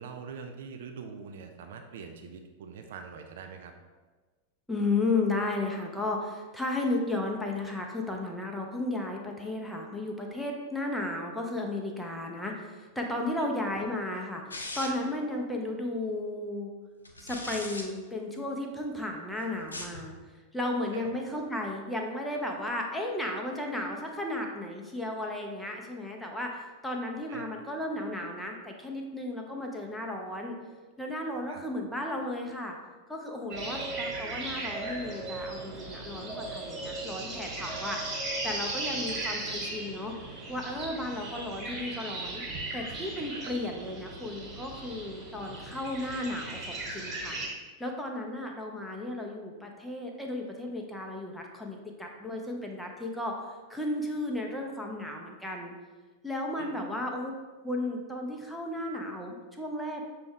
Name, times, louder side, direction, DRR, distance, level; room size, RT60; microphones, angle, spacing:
voice 1, 0.0-3.7 13.4-13.5 20.9-21.2 27.3-27.5 31.5-31.6 33.7-33.9 38.9-39.2 43.3-43.5 56.6-56.8, right 6 dB, 55° right, 5 dB, 0.3 m, -44 dB
voice 2, 4.7-16.7 17.2-30.6 31.0-32.8 33.1-38.0 38.4-40.1 40.5-42.4 42.7-47.4 47.8-55.8 56.2-57.3 57.6-60.0, left 2 dB, 5° left, 0 dB, 0.6 m, -34 dB
sound 1, 14.5-15.1 17.0-17.9 19.6-20.0, left 2 dB, 80° left, 0.5 m, -39 dB
sound 2, 33.5-47.5, right 2 dB, 25° right, 1.3 m, -37 dB
6.0 x 2.3 x 3.4 m, 1.3 s
figure-of-eight pair, 90°, 0 cm